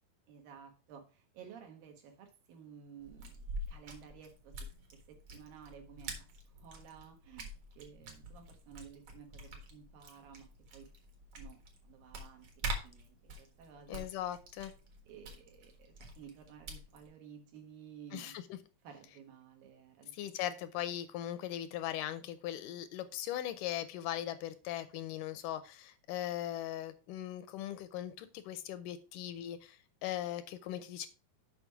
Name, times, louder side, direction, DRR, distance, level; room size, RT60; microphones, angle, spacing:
voice 1, 0.3-4.7 5.1-6.3 6.6-10.9 11.4-14.1 15.1-18.3 18.8-20.3, right 8 dB, 80° right, 4 dB, 3.2 m, -54 dB
sound 1, 3.0-17.1, right 1 dB, 50° right, 2.2 m, -46 dB
voice 2, 13.9-14.7 18.1-18.4 20.1-31.1, left 12 dB, 80° left, 12 dB, 2.0 m, -39 dB
7.2 x 5.6 x 4.6 m, 0.34 s
omnidirectional pair, 4.0 m